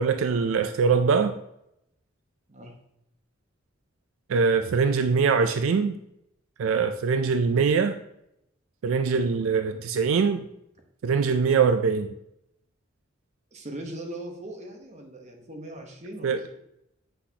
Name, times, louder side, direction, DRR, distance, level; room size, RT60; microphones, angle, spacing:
voice 1, 0.0-1.3 4.3-5.9 6.6-8.0 8.8-10.4 11.0-12.1 16.2-16.4, right 5 dB, 75° right, 8 dB, 0.4 m, -23 dB
voice 2, 13.5-16.6, right 1 dB, 35° right, 2 dB, 1.1 m, -40 dB
7.9 x 6.0 x 2.8 m, 0.81 s
head